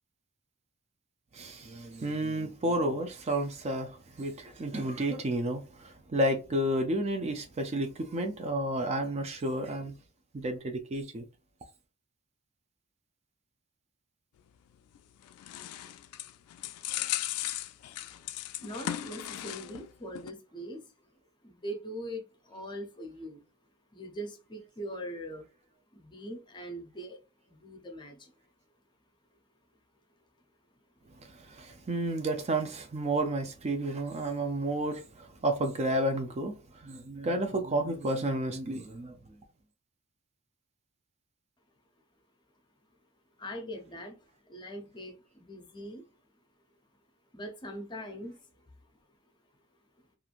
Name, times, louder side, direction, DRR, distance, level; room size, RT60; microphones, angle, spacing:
voice 1, 1.3-9.9 10.3-11.2 31.3-39.2, right 1 dB, 30° right, 0.4 m, -31 dB
sound 1, 14.9-19.9 20.2-20.3, left 13 dB, 85° left, 0.3 m, -37 dB
voice 2, 18.6-20.9 21.4-23.4 23.9-25.5 25.9-27.2 27.5-28.3 43.4-46.0 47.3-48.4, equal, 20° left, 0.5 m, -41 dB
3.0 x 2.5 x 2.4 m
head